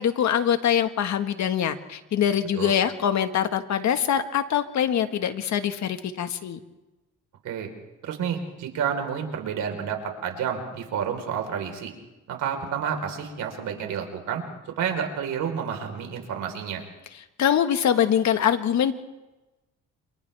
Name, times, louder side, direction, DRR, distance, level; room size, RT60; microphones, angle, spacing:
voice 1, 0.0-6.6 17.4-18.9, left 9 dB, 65° left, 8 dB, 1.7 m, -23 dB
voice 2, 8.0-11.9 12.3-14.4 14.8-16.8, right 7 dB, 80° right, 4 dB, 4.3 m, -30 dB
30.0 x 28.5 x 3.5 m, 1.0 s
cardioid pair, 90°, 30 cm